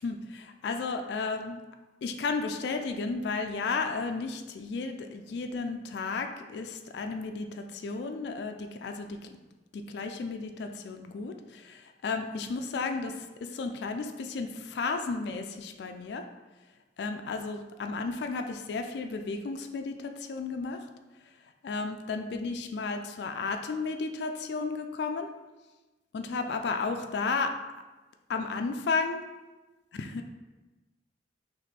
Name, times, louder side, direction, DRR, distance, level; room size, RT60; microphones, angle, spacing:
voice 1, 0.0-1.6 2.0-9.4 9.7-16.2 17.0-20.9 21.6-25.3 26.1-27.5 28.3-29.2 29.9-30.2, left 4 dB, 65° left, 6 dB, 0.3 m, -33 dB
3.3 x 3.1 x 4.1 m, 1.1 s
head